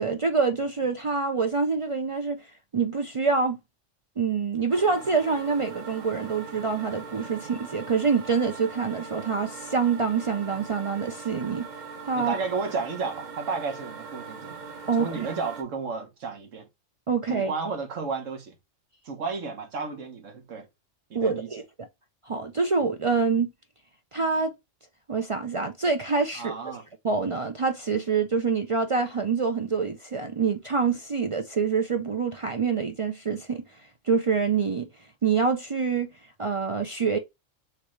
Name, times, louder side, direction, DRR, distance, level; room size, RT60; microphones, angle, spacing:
voice 1, 0.0-3.6 4.2-11.7 12.1-12.4 14.9-15.3 17.1-17.5 21.1-21.6 22.3-23.5 24.1-24.5 25.1-26.5 27.0-33.6 34.0-34.9 35.2-36.1 36.4-37.2, right 5 dB, 60° right, 0.3 m, -26 dB
sound 1, 4.7-15.6, right 5 dB, 45° right, 0.8 m, -41 dB
voice 2, 12.2-14.6 15.0-16.7 17.3-18.5 19.0-20.7 21.1-21.5 26.3-26.8, right 4 dB, 85° right, 1.5 m, -32 dB
6.5 x 2.4 x 3.1 m
omnidirectional pair, 1.3 m